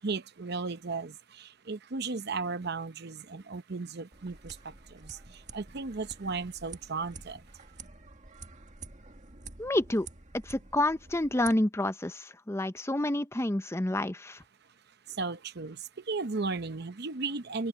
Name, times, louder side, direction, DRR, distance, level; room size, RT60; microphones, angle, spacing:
voice 1, 0.0-7.4 15.1-17.7, right 4 dB, 50° right, 0.8 m, -35 dB
sound 1, 4.1-11.5, right 4 dB, 35° right, 1.9 m, -49 dB
voice 2, 9.6-10.1 10.4-14.4, left 1 dB, 15° left, 0.7 m, -29 dB
open air
head